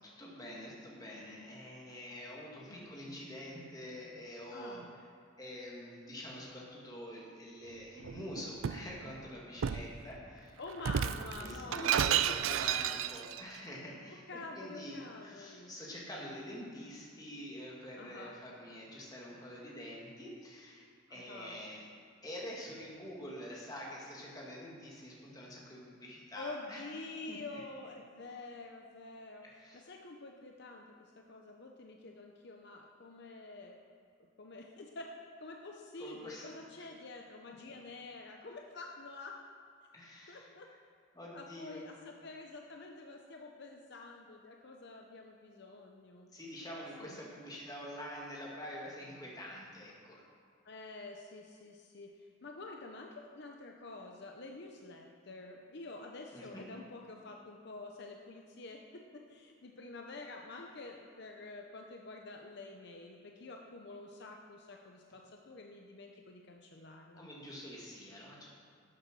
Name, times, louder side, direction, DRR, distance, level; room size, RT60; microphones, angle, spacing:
voice 1, 0.0-4.8 5.4-10.6 11.4-14.2 14.6-21.8 22.2-26.8 27.3-27.6 29.4-29.8 36.0-36.5 39.9-40.5 41.1-41.8 46.3-50.2 56.3-56.6 67.1-68.5, equal, 20° left, -4 dB, 2.3 m, -46 dB
voice 2, 2.7-3.0 4.5-4.9 10.6-12.6 14.1-15.7 18.0-18.4 21.1-21.6 26.3-29.4 29.7-33.8 34.4-35.1 35.4-39.3 40.3-40.7 41.3-46.3 47.0-47.2 50.6-67.3, left 3 dB, 55° left, 2 dB, 0.8 m, -48 dB
Shatter, 8.0-8.9 9.6-9.9 10.8-13.4, right 9 dB, 80° right, 0.4 m, -32 dB
11.5 x 7.8 x 6.2 m, 2.2 s
head